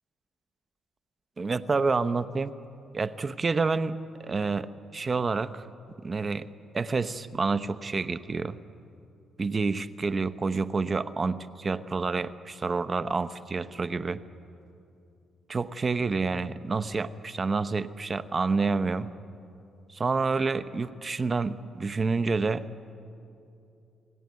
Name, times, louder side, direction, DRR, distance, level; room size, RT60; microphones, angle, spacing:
voice 1, 1.4-2.5 2.9-5.7 6.0-6.4 6.7-8.6 9.4-14.2 15.5-19.1 19.9-22.6, right 4 dB, 35° right, 13 dB, 1.0 m, -28 dB
29.0 x 18.5 x 9.6 m, 2.7 s
cardioid pair, 90°, 0 cm